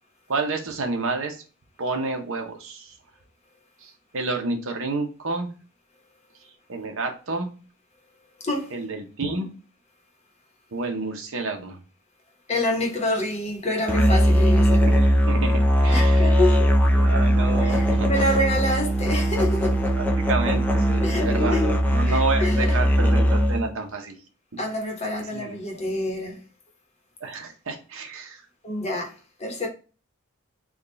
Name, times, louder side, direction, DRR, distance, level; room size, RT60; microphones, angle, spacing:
voice 1, 0.3-1.4 1.8-3.0 3.8-5.5 6.7-7.5 8.7-9.5 10.7-11.8 14.9-16.4 16.9-18.3 19.1-19.3 19.9-24.2 24.5-24.6 25.3-25.6 27.2-28.4, right 3 dB, 65° right, 0.8 m, -30 dB
voice 2, 8.4-8.7 12.5-14.9 15.9-16.7 17.6-19.8 21.0-21.6 22.1-22.8 24.6-26.4 28.6-29.7, left 1 dB, 30° left, 0.9 m, -27 dB
Musical instrument, 13.9-23.7, equal, 10° left, 0.4 m, -20 dB
3.6 x 2.3 x 3.8 m
head